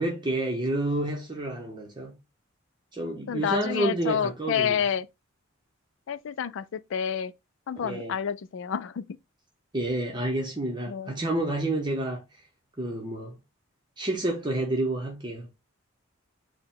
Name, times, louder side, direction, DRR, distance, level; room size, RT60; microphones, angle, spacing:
voice 1, 0.0-2.1 2.9-4.8 7.8-8.1 9.7-12.4 12.8-13.4 14.0-15.5, right 1 dB, 20° right, 0.8 m, -29 dB
voice 2, 3.3-5.1 6.1-7.3 7.7-9.0 10.9-11.1, left 8 dB, 65° left, 0.4 m, -29 dB
4.6 x 2.2 x 3.8 m
head